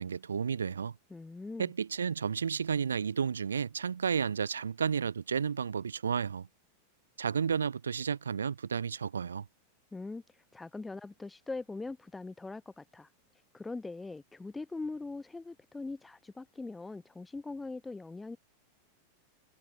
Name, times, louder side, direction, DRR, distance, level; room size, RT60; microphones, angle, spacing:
voice 1, 0.0-0.9 1.6-6.5 7.2-9.5, right 6 dB, 70° right, 0.5 m, -32 dB
voice 2, 1.1-1.7 9.9-13.1 13.5-18.4, left 3 dB, 10° left, 1.4 m, -41 dB
figure-of-eight pair, 90°, 0 cm